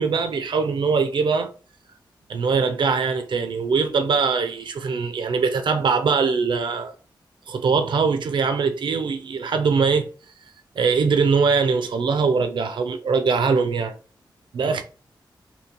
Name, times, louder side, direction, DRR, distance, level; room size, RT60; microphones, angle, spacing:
voice 1, 0.0-1.5 2.3-6.9 7.5-10.1 10.8-13.9 14.5-14.8, right 5 dB, 70° right, 0.5 m, -22 dB
5.5 x 2.2 x 2.9 m
wide cardioid pair, 125°, 8 cm